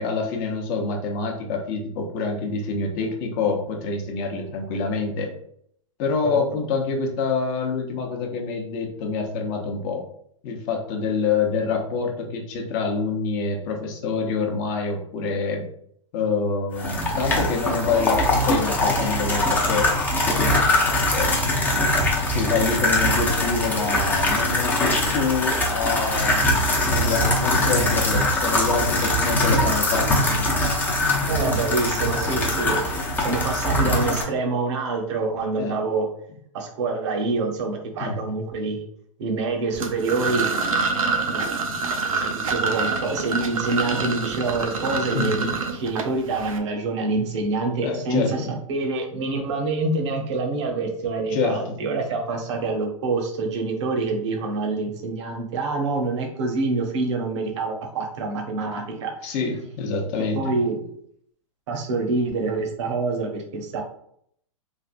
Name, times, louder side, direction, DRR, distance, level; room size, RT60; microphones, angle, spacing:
voice 1, 0.0-5.3 6.0-10.0 10.4-15.7 16.1-19.9 21.1-21.3 22.3-30.2 35.6-35.8 38.0-38.2 45.1-45.4 47.8-48.3 51.3-51.8 59.2-60.4, left 4 dB, 40° left, 2 dB, 0.7 m, -26 dB
sound 1, 16.8-34.2, left 1 dB, 10° left, 0.5 m, -22 dB
voice 2, 31.3-36.1 36.5-38.9 39.2-40.5 41.3-42.0 42.3-59.3 60.4-60.8 61.7-63.8, right 3 dB, 55° right, 2 dB, 0.9 m, -26 dB
sound 2, 39.7-46.6, right 4 dB, 80° right, 0.6 m, -26 dB
3.3 x 2.4 x 2.5 m, 0.68 s
hypercardioid pair, 130°, 18 cm